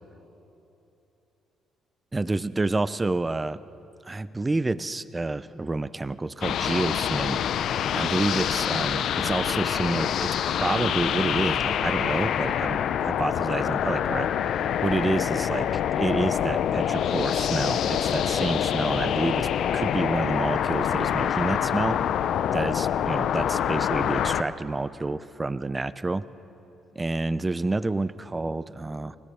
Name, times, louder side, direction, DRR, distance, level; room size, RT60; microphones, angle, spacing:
voice 1, 2.1-3.6 4.0-7.4 7.9-14.3 14.8-15.7 16.0-22.0 22.5-26.2 27.0-29.2, right 2 dB, 20° right, 16 dB, 0.7 m, -28 dB
sound 1, 6.4-24.4, left 9 dB, 70° left, 0.7 m, -26 dB
24.5 x 18.0 x 7.1 m, 3.0 s
supercardioid pair, 65°, 0 cm